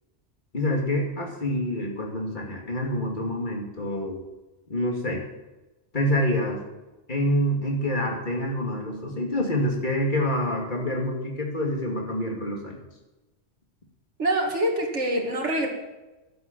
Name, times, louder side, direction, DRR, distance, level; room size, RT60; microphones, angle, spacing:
voice 1, 0.5-4.2 4.7-5.2 5.9-6.6 7.1-12.8, equal, 40° left, 0 dB, 2.7 m, -27 dB
voice 2, 14.2-15.7, right 1 dB, 75° right, 0 dB, 2.5 m, -25 dB
11.5 x 8.2 x 7.4 m, 1.1 s
omnidirectional pair, 1.2 m